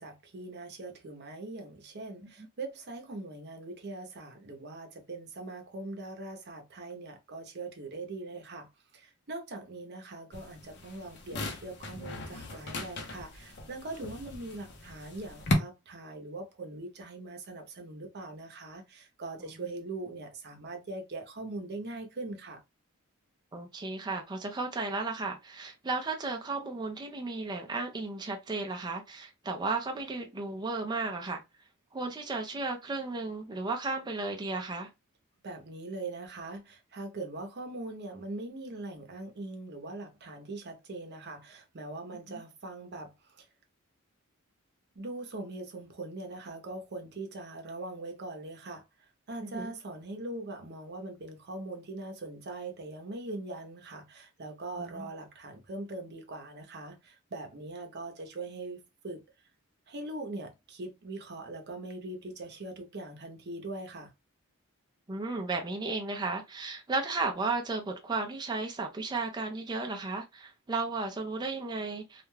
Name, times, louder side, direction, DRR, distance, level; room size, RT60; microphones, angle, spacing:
voice 1, 0.0-22.6 35.4-43.4 45.0-48.8 49.3-59.2 59.9-64.1, right 2 dB, 50° right, 0.7 m, -41 dB
sound 1, 10.3-15.5, left 2 dB, 50° left, 0.7 m, -37 dB
voice 2, 23.5-31.4 31.9-34.9 42.3-42.4 49.4-49.7 54.8-55.1 65.1-72.3, right 3 dB, 20° right, 0.4 m, -34 dB
2.4 x 2.2 x 3.1 m
head